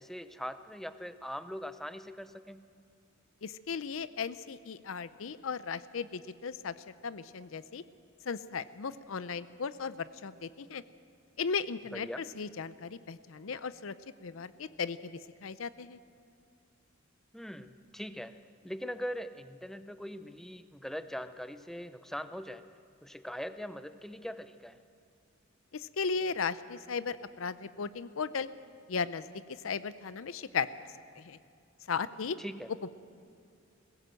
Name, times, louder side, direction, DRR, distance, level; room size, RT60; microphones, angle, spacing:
voice 1, 0.0-2.7 11.9-12.2 17.3-22.7 23.0-24.8 31.2-31.3 32.4-32.7, equal, ahead, 11 dB, 0.6 m, -41 dB
voice 2, 3.4-7.8 8.3-10.8 11.4-13.9 14.2-16.0 25.7-28.5 28.9-29.2 29.6-30.7 31.2-31.4 31.9-32.4, left 5 dB, 80° left, 15 dB, 0.6 m, -36 dB
21.0 x 16.5 x 7.6 m, 2.4 s
head